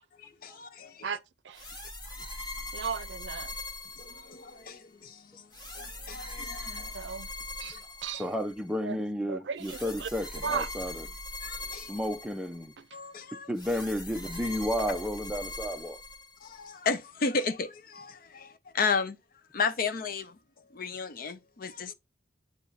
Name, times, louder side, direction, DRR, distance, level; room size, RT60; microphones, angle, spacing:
voice 1, 0.2-1.2 4.0-5.5 5.7-6.9 11.4-11.9 12.9-13.5 16.4-19.2 19.5-20.4 20.7-21.9, left 4 dB, 50° left, 0.6 m, -34 dB
sound 1, 1.5-4.7 5.5-8.6 9.6-12.7 13.6-16.7, left 2 dB, 25° left, 1.4 m, -41 dB
voice 2, 2.7-3.5 6.9-7.3 7.6-8.2 8.8-9.0 9.3-10.1 10.4-10.7, right 6 dB, 80° right, 0.6 m, -35 dB
voice 3, 8.2-11.1 11.7-12.7 13.5-16.0, equal, 5° right, 0.5 m, -32 dB
8.6 x 3.0 x 4.0 m
head